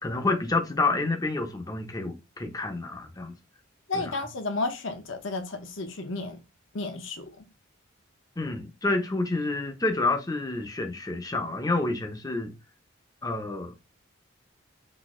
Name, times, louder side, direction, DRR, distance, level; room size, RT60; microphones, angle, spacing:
voice 1, 0.0-3.4 3.9-4.1 8.4-12.5 13.2-13.7, left 3 dB, 15° left, 0.6 m, -28 dB
voice 2, 3.9-6.4 6.7-7.4, left 3 dB, 65° left, 0.8 m, -32 dB
4.1 x 2.6 x 3.7 m
head